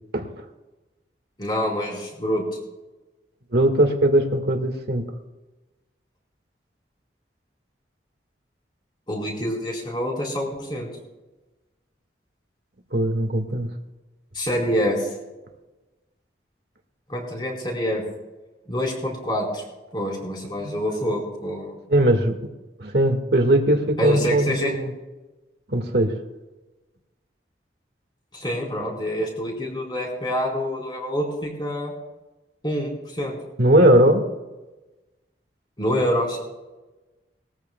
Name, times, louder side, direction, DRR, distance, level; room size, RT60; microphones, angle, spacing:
voice 1, 1.4-2.4 9.1-10.9 14.3-15.1 17.1-18.0 18.7-19.6 19.9-21.7 24.0-24.7 28.3-31.9 32.6-33.4 35.8-36.4, equal, 25° left, -2 dB, 4.2 m, -26 dB
voice 2, 3.5-5.1 12.9-13.7 20.6-20.7 21.9-22.4 22.8-24.9 25.7-26.2 33.6-34.2, right 1 dB, 65° right, 5 dB, 1.7 m, -19 dB
21.5 x 14.0 x 2.3 m, 1.1 s
head